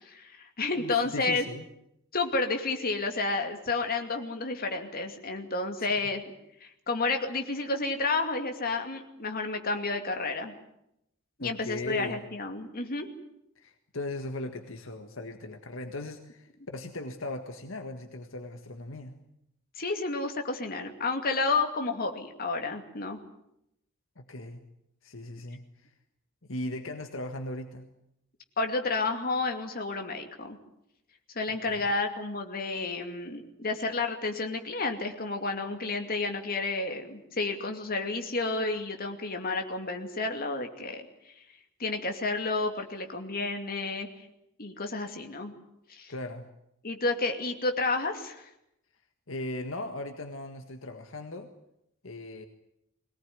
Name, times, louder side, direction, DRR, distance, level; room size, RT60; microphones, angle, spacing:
voice 1, 0.0-1.4 2.1-6.2 6.6-10.5 11.4-13.1 19.8-23.2 28.6-30.6 31.3-41.1 41.8-44.1 44.6-45.5 45.9-46.1 46.8-48.5, left 3 dB, 45° left, 4 dB, 2.6 m, -31 dB
voice 2, 0.8-1.6 5.8-5.9 11.4-12.2 13.6-19.2 24.2-24.6 25.0-25.9 26.5-27.9 31.6-31.9 46.1-46.4 49.3-51.5 52.0-52.5, left 2 dB, 70° left, 6 dB, 1.7 m, -38 dB
22.0 x 18.5 x 9.5 m, 0.80 s
head